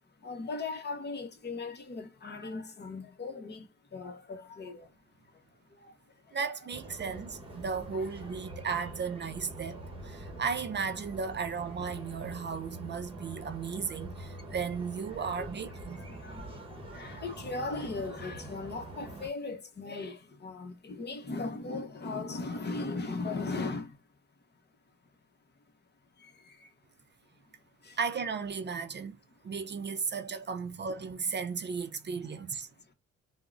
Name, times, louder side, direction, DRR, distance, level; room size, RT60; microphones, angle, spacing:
voice 1, 0.2-5.0 5.2-5.4 5.7-6.4 7.9-8.0 8.5-8.7 10.1-10.4 15.2-15.5 15.9-24.0 26.2-26.7 27.8-28.0 32.8-32.9, left 3 dB, 35° left, 0.8 m, -39 dB
voice 2, 6.3-16.0 28.0-29.2 29.4-32.7, right 5 dB, 35° right, 0.5 m, -35 dB
sound 1, 6.7-19.3, right 1 dB, 20° right, 1.0 m, -45 dB
3.6 x 2.1 x 2.4 m
cardioid pair, 90°, 30 cm